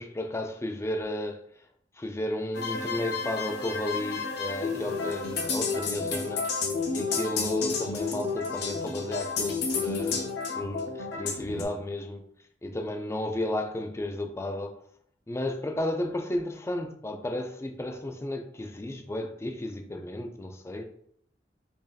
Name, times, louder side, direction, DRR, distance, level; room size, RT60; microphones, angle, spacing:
voice 1, 0.0-1.4 2.0-6.5 6.9-12.2 12.6-14.8 15.3-20.9, left 1 dB, 15° left, 0.4 m, -33 dB
sound 1, 2.5-11.6, left 4 dB, 60° left, 0.7 m, -31 dB
3.2 x 2.7 x 3.8 m
head